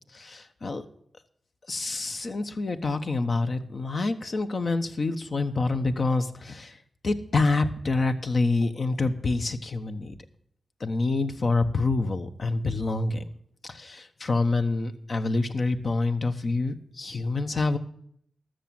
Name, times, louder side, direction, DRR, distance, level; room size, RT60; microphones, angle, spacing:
voice 1, 0.1-0.8 1.7-6.8 7.0-10.2 10.8-13.2 13.6-17.8, left 3 dB, 55° left, 8 dB, 1.0 m, -27 dB
13.5 x 6.3 x 7.6 m, 0.68 s
cardioid pair, 45°, 0 cm